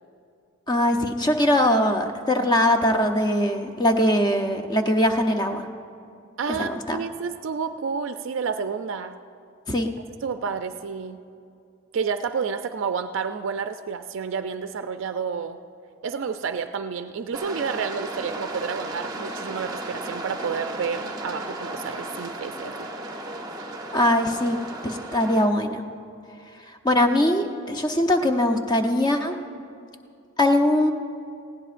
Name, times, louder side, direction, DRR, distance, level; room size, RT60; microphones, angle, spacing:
voice 1, 0.7-5.7 6.6-7.0 9.7-9.9 23.9-25.8 26.8-29.3 30.4-30.9, left 1 dB, 20° left, 5 dB, 0.6 m, -21 dB
voice 2, 6.4-9.2 10.2-11.2 11.9-15.6 16.0-22.9, right 6 dB, 65° right, 8 dB, 0.4 m, -30 dB
sound 1, 17.3-25.5, right 1 dB, 20° right, 0.7 m, -35 dB
19.0 x 16.0 x 2.5 m, 2.4 s
head